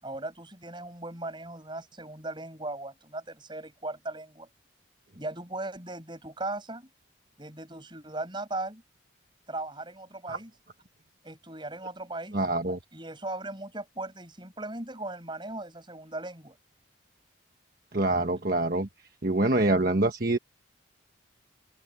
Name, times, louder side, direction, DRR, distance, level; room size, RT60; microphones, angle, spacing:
voice 1, 0.0-4.5 5.1-6.9 7.4-8.8 9.5-10.5 11.2-12.4 12.9-16.6, right 2 dB, 25° right, 6.6 m, -38 dB
voice 2, 12.3-12.8 17.9-18.9 19.2-20.4, right 2 dB, 45° right, 1.3 m, -25 dB
head